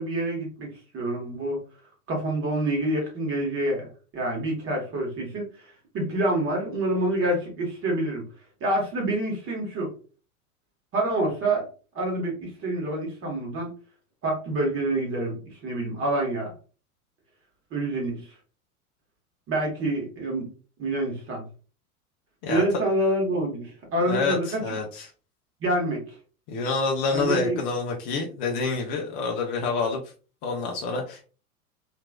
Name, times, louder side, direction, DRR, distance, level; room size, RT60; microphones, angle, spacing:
voice 1, 0.0-1.6 2.1-5.5 5.9-8.2 8.6-9.9 10.9-11.7 11.9-13.7 14.2-16.5 17.7-18.3 19.5-20.5 20.8-21.4 22.5-24.6 25.6-26.1 27.1-27.6, right 1 dB, 30° right, 0 dB, 1.3 m, -27 dB
voice 2, 24.0-25.1 26.5-30.0 30.4-31.3, left 4 dB, 25° left, 0 dB, 0.4 m, -27 dB
2.9 x 2.6 x 2.2 m, 0.36 s
figure-of-eight pair, 95°, 45 cm